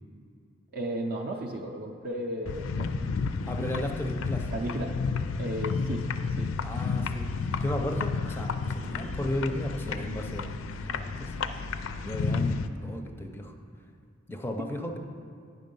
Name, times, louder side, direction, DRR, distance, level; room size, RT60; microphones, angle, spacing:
voice 1, 0.7-3.2 4.5-5.0 5.3-6.1 6.3-6.5 14.6-14.7, right 1 dB, 50° right, 1 dB, 0.5 m, -34 dB
sound 1, 2.5-12.7, left 4 dB, 75° left, 0.4 m, -31 dB
voice 2, 3.4-4.5 6.6-7.3 7.6-10.5 10.8-11.5 12.0-13.5 14.3-15.0, left 1 dB, 10° left, 4 dB, 0.5 m, -34 dB
9.4 x 5.4 x 5.3 m, 2.4 s
head